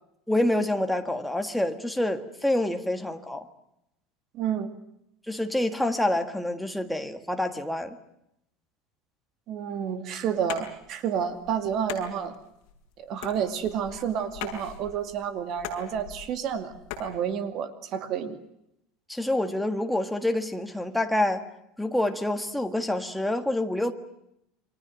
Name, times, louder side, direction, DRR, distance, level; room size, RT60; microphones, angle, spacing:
voice 1, 0.3-3.4 5.3-8.0 19.1-21.4 21.8-23.9, left 1 dB, ahead, 6 dB, 1.6 m, -27 dB
voice 2, 4.3-4.7 9.5-12.4 13.0-16.7 17.0-18.4, right 8 dB, 40° right, 9 dB, 2.3 m, -30 dB
sound 1, 10.4-17.1, left 7 dB, 55° left, 6.1 m, -41 dB
29.5 x 24.5 x 6.3 m, 0.81 s
cardioid pair, 170°, 0 cm